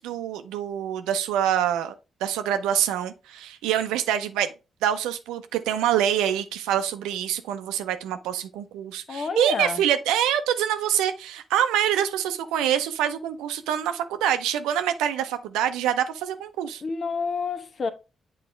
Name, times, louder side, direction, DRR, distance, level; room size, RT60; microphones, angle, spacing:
voice 1, 0.0-1.9 2.2-4.5 4.8-16.8, right 10 dB, 80° right, 0.6 m, -25 dB
voice 2, 9.1-9.8 16.8-17.9, left 4 dB, 50° left, 0.9 m, -29 dB
7.8 x 4.1 x 3.3 m
hypercardioid pair, 40°, 0 cm